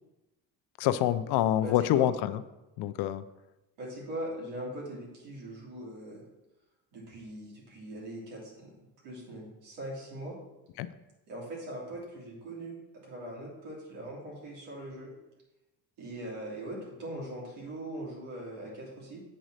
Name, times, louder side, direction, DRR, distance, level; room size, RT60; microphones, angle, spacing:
voice 1, 0.8-2.4 2.8-3.2 10.8-10.9, left 12 dB, 70° left, 13 dB, 0.5 m, -26 dB
voice 2, 1.6-2.1 3.8-6.2 6.9-8.7 9.0-10.3 11.3-15.1 16.0-19.2, right 1 dB, 80° right, -4 dB, 3.0 m, -41 dB
7.8 x 4.0 x 6.4 m, 1.0 s
cardioid pair, 150°, 41 cm